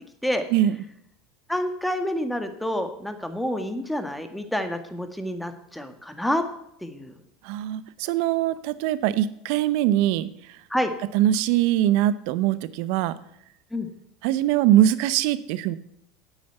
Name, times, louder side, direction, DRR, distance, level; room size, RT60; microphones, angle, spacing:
voice 1, 1.5-6.4 6.8-7.1 10.7-10.9 13.7-13.9, left 1 dB, 5° left, 7 dB, 1.8 m, -28 dB
voice 2, 7.4-10.3 11.1-13.2 14.2-15.8, right 12 dB, 65° right, 16 dB, 0.7 m, -22 dB
9.3 x 8.2 x 8.1 m, 0.74 s
hypercardioid pair, 85°, 0 cm